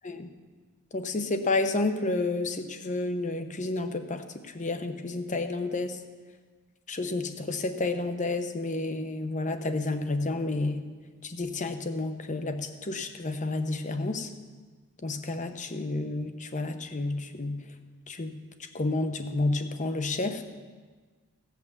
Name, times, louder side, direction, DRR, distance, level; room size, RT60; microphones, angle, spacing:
voice 1, 0.9-6.0 6.9-10.9 11.2-14.3 15.0-17.6 18.1-18.3 18.7-20.4, left 2 dB, 35° left, 8 dB, 0.9 m, -30 dB
16.5 x 5.9 x 7.2 m, 1.4 s
head